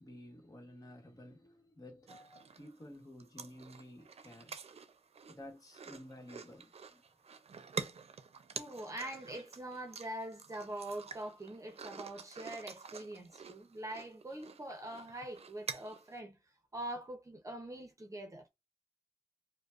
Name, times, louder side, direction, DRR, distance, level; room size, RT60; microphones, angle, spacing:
voice 1, 0.0-4.6 5.3-7.0, left 1 dB, 35° left, 1.3 m, -53 dB
voice 2, 2.1-2.5 8.6-16.4 16.7-18.5, right 1 dB, 30° right, 0.7 m, -44 dB
sound 1, 2.1-2.8 3.2-16.2, right 5 dB, 75° right, 0.6 m, -48 dB
4.9 x 2.2 x 2.4 m
wide cardioid pair, 90°, 11 cm